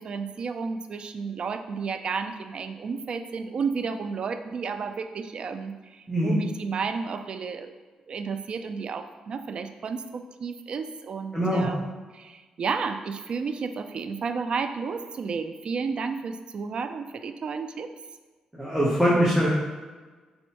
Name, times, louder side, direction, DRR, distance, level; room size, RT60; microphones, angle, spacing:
voice 1, 0.0-7.7 8.1-17.9, right 5 dB, 50° right, 8 dB, 0.3 m, -32 dB
voice 2, 11.3-11.7 18.5-19.5, equal, ahead, -7 dB, 0.9 m, -22 dB
4.1 x 2.6 x 4.5 m, 1.3 s
cardioid pair, 105°, 2 cm